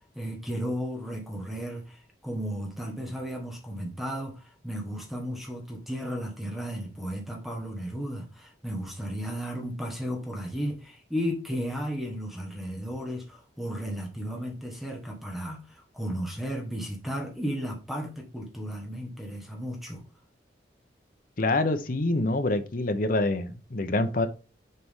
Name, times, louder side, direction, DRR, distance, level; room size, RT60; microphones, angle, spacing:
voice 1, 0.1-20.0, equal, ahead, 1.4 m, -34 dB
voice 2, 21.4-24.3, left 2 dB, 50° left, 0.8 m, -26 dB
6.8 x 4.7 x 3.7 m
head